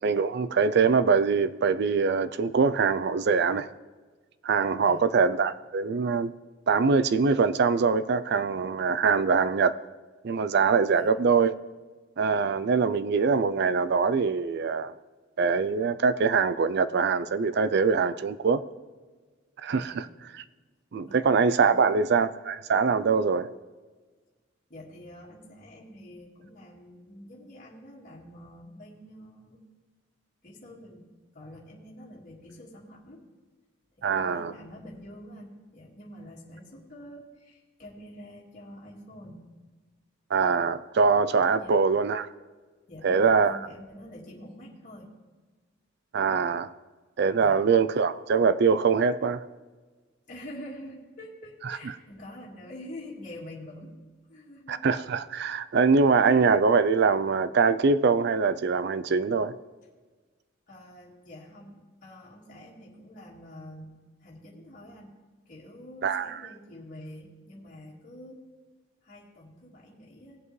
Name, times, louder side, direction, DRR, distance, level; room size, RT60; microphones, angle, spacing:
voice 1, 0.0-3.7 4.4-6.3 6.7-9.7 10.2-11.5 12.2-14.9 15.4-18.6 19.6-20.0 20.9-23.5 34.0-34.5 40.3-42.3 43.0-43.6 46.1-46.7 47.2-49.4 54.7-59.5 66.0-66.3, right 5 dB, 50° right, 0.4 m, -23 dB
voice 2, 19.7-20.0 21.1-21.3 21.7-21.9 24.7-29.6 30.4-33.2 34.0-39.5 41.5-41.8 42.9-45.1 47.4-47.6 50.3-54.0 54.3-54.9 56.2-56.3 60.7-65.2 65.5-68.4 69.0-70.4, left 1 dB, 40° left, 1.9 m, -46 dB
18.5 x 8.0 x 3.2 m
head